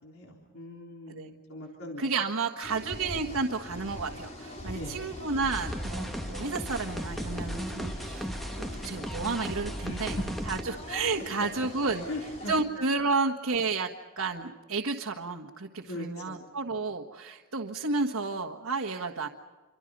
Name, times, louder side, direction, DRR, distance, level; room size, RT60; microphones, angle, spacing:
voice 1, 0.0-2.1 2.8-3.0 4.7-5.1 9.8-10.2 12.1-12.5 15.8-16.5, left 1 dB, 80° left, -1 dB, 3.8 m, -40 dB
voice 2, 2.0-8.3 8.6-10.2 10.5-12.0 12.5-13.9 14.2-19.3, right 4 dB, 80° right, 2 dB, 1.6 m, -31 dB
sound 1, 2.6-12.6, left 1 dB, 35° left, 4.5 m, -42 dB
sound 2, 5.4-10.6, equal, ahead, 1.4 m, -36 dB
27.5 x 25.0 x 5.4 m, 1.3 s
head